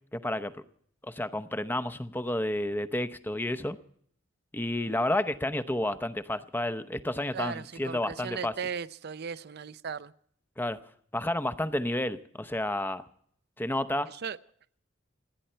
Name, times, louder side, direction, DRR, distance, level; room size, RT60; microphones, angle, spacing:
voice 1, 0.1-0.5 1.0-3.8 4.5-8.5 10.6-10.8 11.1-13.0 13.6-14.1, left 1 dB, 10° left, 0.8 m, -31 dB
voice 2, 7.3-10.1 14.1-14.4, right 6 dB, 55° right, 0.6 m, -37 dB
28.5 x 10.0 x 4.4 m
head